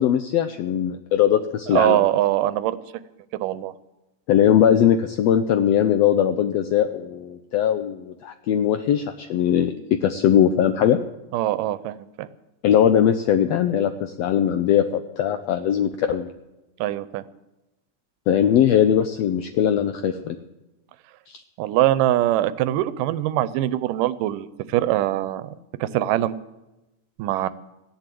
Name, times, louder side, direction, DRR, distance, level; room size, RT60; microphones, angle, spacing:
voice 1, 0.0-2.0 4.3-11.0 12.6-14.9 15.2-16.3 18.3-20.4 21.3-21.4, left 9 dB, 85° left, 9 dB, 1.5 m, -20 dB
voice 2, 1.7-2.8 3.4-3.7 11.3-12.3 16.8-17.2 21.6-25.5 25.8-26.4 27.2-27.5, right 14 dB, 90° right, 16 dB, 2.3 m, -22 dB
16.0 x 10.5 x 7.5 m, 1.0 s
omnidirectional pair, 3.7 m